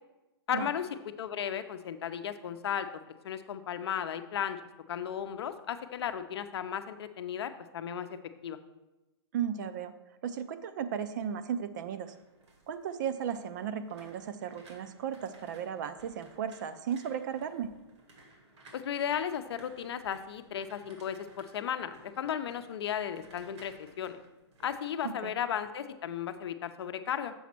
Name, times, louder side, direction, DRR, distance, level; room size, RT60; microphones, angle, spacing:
voice 1, 0.5-2.9 3.2-4.6 4.9-8.1 8.4-8.6 18.7-24.2 24.6-27.3, left 9 dB, 65° left, 9 dB, 0.6 m, -35 dB
voice 2, 9.3-9.9 10.2-12.1 12.7-17.7 25.0-25.3, right 8 dB, 45° right, 11 dB, 0.5 m, -35 dB
sound 1, 11.7-25.7 26.0-26.4, right 2 dB, 85° right, 2.1 m, -58 dB
7.0 x 4.1 x 5.9 m, 1.0 s
hypercardioid pair, 155°, 14 cm